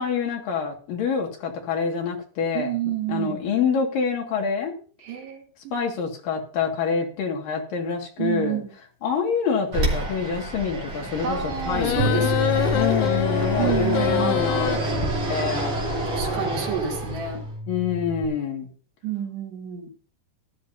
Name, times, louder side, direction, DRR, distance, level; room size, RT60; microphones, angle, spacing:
voice 1, 0.0-2.7 3.1-4.8 5.7-8.6 9.0-12.3 12.7-15.8 17.7-18.7, left 6 dB, 60° left, 1 dB, 3.6 m, -26 dB
voice 2, 2.5-3.4 5.0-5.8 8.2-8.7 11.2-12.8 13.6-14.6 16.1-17.4 19.0-19.9, right 8 dB, 90° right, -1 dB, 4.6 m, -30 dB
Fixed-wing aircraft airplane, 9.7-17.5, right 2 dB, 40° right, 4.5 m, -29 dB
sound 1, 11.7-14.8, left 10 dB, 75° left, 1.8 m, -25 dB
Bass guitar, 12.0-18.2, equal, 65° right, 2.2 m, -30 dB
16.5 x 12.0 x 2.8 m, 0.40 s
omnidirectional pair, 4.7 m